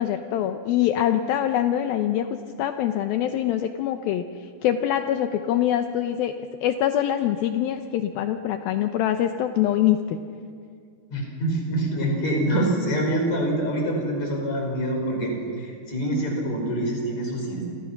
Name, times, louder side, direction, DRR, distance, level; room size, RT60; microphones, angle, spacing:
voice 1, 0.0-4.2 4.6-6.3 6.6-10.2, left 11 dB, 75° left, 7 dB, 2.5 m, -24 dB
voice 2, 11.1-17.6, right 1 dB, 45° left, 1 dB, 6.2 m, -25 dB
28.0 x 27.5 x 5.9 m, 2.3 s
omnidirectional pair, 4.5 m